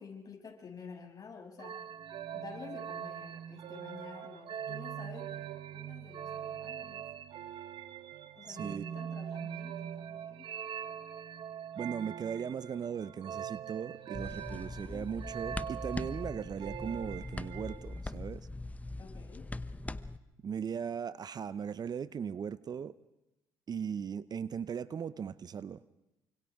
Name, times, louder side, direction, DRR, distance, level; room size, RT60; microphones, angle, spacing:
voice 1, 0.0-1.8 2.3-7.1 8.4-10.5 14.5-15.1 19.0-19.5, left 5 dB, 40° left, 1 dB, 7.0 m, -50 dB
sound 1, 1.6-18.0, right 9 dB, 60° right, 1.2 m, -42 dB
voice 2, 8.5-8.8 11.8-18.5 20.4-22.9 23.7-25.8, right 7 dB, 40° right, 16 dB, 0.6 m, -38 dB
sound 2, 14.1-20.2, left 2 dB, 15° left, 0.9 m, -41 dB
28.5 x 25.5 x 3.6 m, 0.92 s
hypercardioid pair, 60°, 10 cm